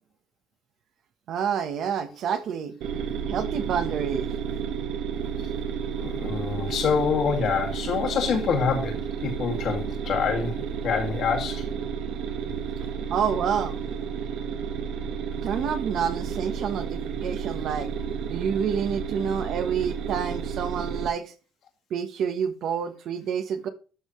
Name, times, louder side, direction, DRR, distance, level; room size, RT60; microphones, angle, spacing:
voice 1, 1.3-2.7 3.3-4.3 13.1-13.8 15.4-17.9 18.3-21.3 21.9-23.7, right 7 dB, 55° right, 1.0 m, -28 dB
sound 1, 2.8-21.1, right 7 dB, 75° right, 1.5 m, -31 dB
voice 2, 6.0-11.6, left 6 dB, 50° left, 2.2 m, -26 dB
12.5 x 5.6 x 3.1 m
cardioid pair, 155°, 0 cm